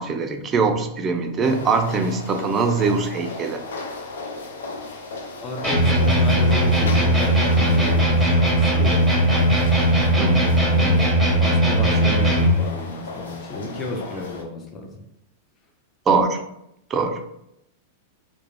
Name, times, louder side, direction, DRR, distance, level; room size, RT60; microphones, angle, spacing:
voice 1, 0.0-3.6 10.2-10.6 16.1-16.4 16.9-17.2, right 4 dB, 25° right, 5 dB, 0.4 m, -22 dB
sound 1, 1.4-14.4, left 3 dB, 85° left, 0.4 m, -36 dB
voice 2, 5.4-9.1 10.7-15.0, left 2 dB, 25° left, 1 dB, 0.5 m, -32 dB
sound 2, 5.6-12.6, right 1 dB, ahead, 0.9 m, -18 dB
2.3 x 2.0 x 3.1 m, 0.80 s
hypercardioid pair, 120°, 0 cm